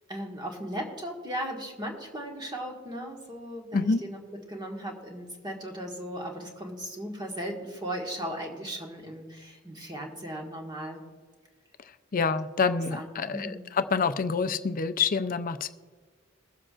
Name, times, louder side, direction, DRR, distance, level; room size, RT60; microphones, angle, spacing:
voice 1, 0.1-4.2 4.5-11.0 12.9-13.6, equal, 20° right, 0 dB, 1.6 m, -37 dB
voice 2, 12.1-15.7, left 5 dB, 45° left, 11 dB, 0.5 m, -27 dB
22.0 x 7.4 x 2.5 m, 1.5 s
head